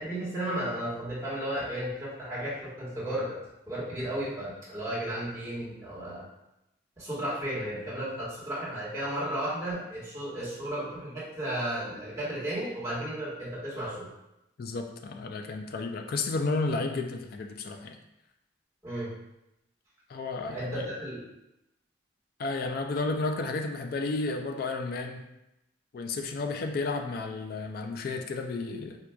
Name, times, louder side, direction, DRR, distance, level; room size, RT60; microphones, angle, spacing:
voice 1, 0.0-3.4 3.7-6.2 7.0-14.1 18.8-19.1 20.4-21.2, right 1 dB, 15° right, -10 dB, 1.3 m, -34 dB
voice 2, 14.6-18.0 20.1-20.9 22.4-25.2 25.9-29.0, left 3 dB, 50° left, 5 dB, 0.3 m, -32 dB
4.4 x 2.4 x 2.2 m, 0.87 s
head